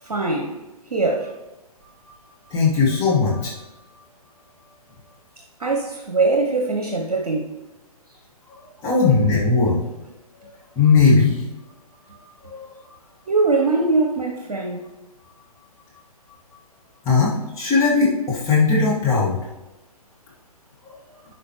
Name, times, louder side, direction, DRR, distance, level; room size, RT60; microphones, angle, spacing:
voice 1, 0.0-0.6 0.9-1.4 5.6-7.6 13.3-14.9, right 3 dB, 65° right, 1.2 m, -22 dB
voice 2, 2.5-3.5 8.8-9.8 10.8-11.4 12.5-12.7 17.0-19.4, left 4 dB, 15° left, 2.0 m, -18 dB
12.5 x 4.9 x 3.2 m
figure-of-eight pair, 130°, 20 cm